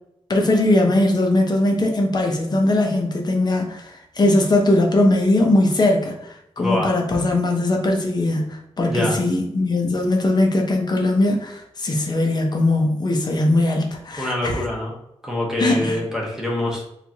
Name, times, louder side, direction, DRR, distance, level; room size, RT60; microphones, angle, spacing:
voice 1, 0.3-14.6 15.6-16.0, left 2 dB, 35° left, 1 dB, 0.6 m, -20 dB
voice 2, 6.6-7.0 8.9-9.2 14.2-14.9 15.2-16.8, left 1 dB, 5° right, -2 dB, 0.9 m, -25 dB
4.4 x 2.5 x 2.8 m, 0.79 s
wide cardioid pair, 165°, 12 cm